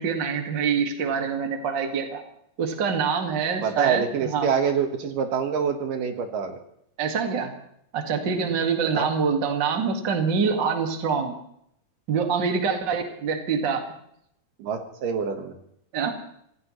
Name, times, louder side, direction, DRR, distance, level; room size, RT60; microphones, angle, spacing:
voice 1, 0.0-2.2 2.6-4.5 7.0-7.5 7.9-11.4 12.1-13.8 15.9-16.1, right 6 dB, 40° right, 4 dB, 2.2 m, -25 dB
voice 2, 3.6-6.6 8.9-9.1 10.5-10.7 14.6-15.6, right 6 dB, 75° right, 5 dB, 3.1 m, -26 dB
26.5 x 16.5 x 3.2 m, 0.71 s
omnidirectional pair, 3.9 m